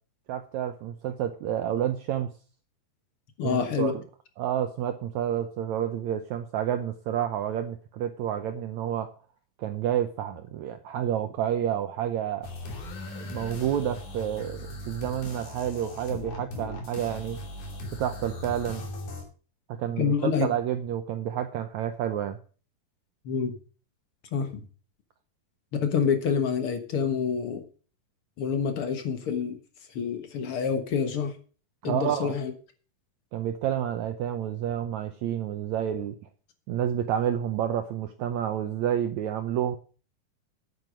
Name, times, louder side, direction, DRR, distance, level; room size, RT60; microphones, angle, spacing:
voice 1, 0.3-2.3 3.4-3.9 4.4-9.1 9.6-12.5 13.1-17.4 18.0-18.9 19.7-22.4 31.8-32.3 33.3-36.2 36.7-39.8, right 10 dB, 75° right, 8 dB, 1.7 m, -29 dB
voice 2, 3.4-3.9 20.0-20.5 23.2-23.5 24.3-24.6 25.7-27.6 28.4-29.6 29.9-31.3 31.8-32.5, left 6 dB, 55° left, 7 dB, 1.6 m, -27 dB
sound 1, 12.4-19.2, left 2 dB, 85° left, 4.7 m, -39 dB
9.8 x 9.1 x 5.0 m, 0.38 s
omnidirectional pair, 4.1 m